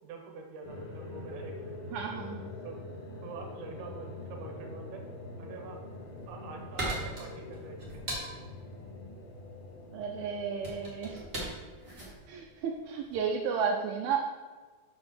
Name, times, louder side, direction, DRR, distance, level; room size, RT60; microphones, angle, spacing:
voice 1, 0.0-1.8 2.6-2.8 3.2-5.0 5.4-5.8 6.3-8.0, right 4 dB, 65° right, 2 dB, 2.4 m, -45 dB
sound 1, 0.6-12.7, left 2 dB, 65° left, 1.3 m, -45 dB
voice 2, 1.9-2.5 9.9-11.3 12.3-14.3, right 6 dB, 80° right, 1 dB, 2.4 m, -33 dB
sound 2, 5.9-13.3, right 1 dB, 30° right, 1.1 m, -40 dB
6.1 x 6.1 x 6.4 m, 1.4 s
omnidirectional pair, 4.5 m